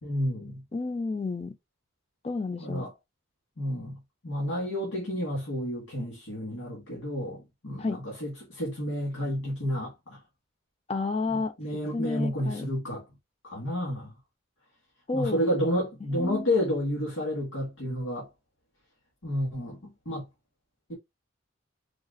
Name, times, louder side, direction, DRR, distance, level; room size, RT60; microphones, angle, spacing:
voice 1, 0.0-0.6 2.6-2.9 3.6-10.2 11.3-13.1 13.4-14.2 15.1-18.3 19.2-20.3, equal, 90° left, 1.9 m, -31 dB
voice 2, 0.7-1.5 2.2-2.9 7.8-8.0 10.9-11.5 11.9-12.6 15.1-15.4 16.2-16.5, left 3 dB, 30° left, 0.4 m, -30 dB
4.8 x 2.4 x 2.4 m
head